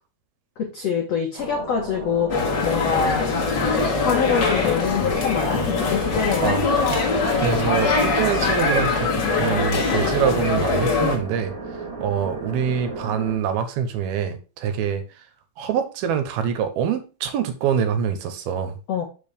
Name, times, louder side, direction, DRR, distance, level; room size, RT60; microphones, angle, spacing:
voice 1, 0.6-2.3 2.6-3.3 3.6-6.6 18.9-19.0, left 7 dB, 85° left, 1 dB, 1.4 m, -25 dB
sound 1, 1.4-13.4, right 3 dB, 40° right, 1.0 m, -34 dB
sound 2, 2.3-11.2, left 4 dB, 60° left, 1.1 m, -22 dB
voice 2, 6.4-6.9 7.4-9.1 9.4-11.5 12.0-15.0 15.6-18.7, right 8 dB, 80° right, 9 dB, 2.7 m, -25 dB
6.6 x 5.9 x 3.4 m, 0.33 s
omnidirectional pair, 4.5 m